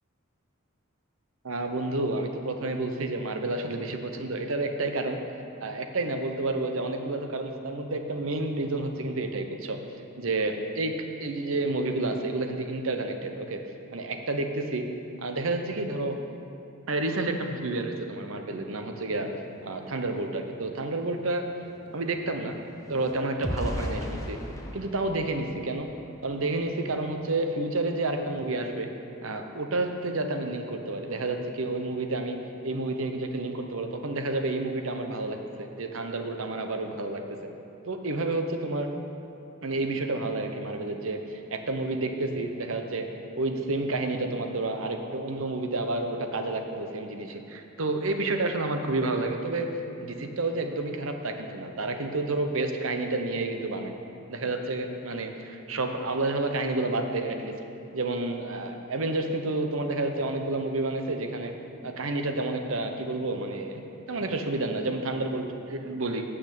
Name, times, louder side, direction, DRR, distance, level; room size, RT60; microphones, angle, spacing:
voice 1, 1.4-5.2 5.6-9.8 10.2-10.9 11.2-13.6 13.9-14.9 15.2-16.2 16.9-19.3 19.6-21.4 21.9-22.6 22.9-24.4 24.7-25.9 26.2-28.9 29.2-32.4 32.6-37.5 37.8-38.9 39.6-43.1 43.3-53.9 54.3-57.5 57.9-61.5 61.8-66.2, right 2 dB, 75° right, 5 dB, 0.9 m, -30 dB
sound 1, 20.5-20.6 20.9-26.3 26.9-27.1 27.4-27.7, equal, 15° left, 0.8 m, -38 dB
9.0 x 6.2 x 8.4 m, 2.8 s
head